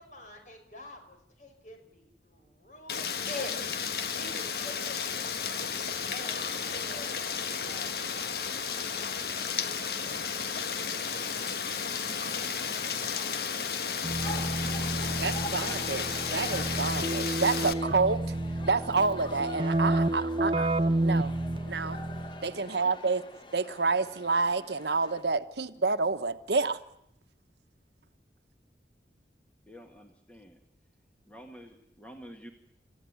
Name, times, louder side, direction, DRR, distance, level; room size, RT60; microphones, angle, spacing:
voice 1, 0.0-7.1 7.6-8.5 8.9-10.3 14.1-14.8, left 2 dB, 45° left, 5 dB, 5.5 m, -47 dB
Rain, 2.9-17.7, left 6 dB, 60° left, 1.4 m, -33 dB
sound 1, 5.7-25.2, left 2 dB, 25° left, 1.2 m, -47 dB
voice 2, 12.0-12.4 13.3-13.7 29.6-30.6 31.2-32.5, equal, 5° left, 3 dB, 1.9 m, -50 dB
Keyboard (musical), 14.0-22.5, right 2 dB, 30° right, 0.9 m, -30 dB
voice 3, 15.2-18.4 18.6-20.7 21.0-21.3 21.7-22.0 22.4-23.2 23.5-26.8, right 4 dB, 75° right, 11 dB, 1.1 m, -29 dB
29.5 x 15.0 x 9.6 m, 0.77 s
head